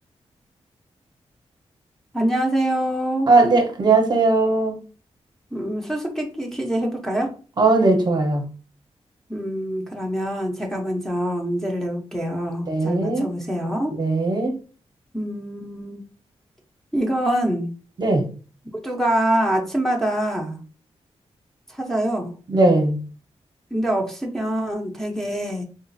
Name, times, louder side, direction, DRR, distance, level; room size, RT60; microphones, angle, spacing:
voice 1, 2.1-3.3 5.5-7.3 9.3-13.9 15.1-16.0 16.9-17.7 18.8-20.6 21.7-22.3 23.7-25.6, right 1 dB, 5° left, 0.6 m, -25 dB
voice 2, 3.3-4.8 7.6-8.5 12.7-13.3 13.9-14.5 18.0-18.3 22.5-23.0, right 3 dB, 40° right, 0.7 m, -18 dB
3.9 x 2.4 x 2.5 m
wide cardioid pair, 120°, 11 cm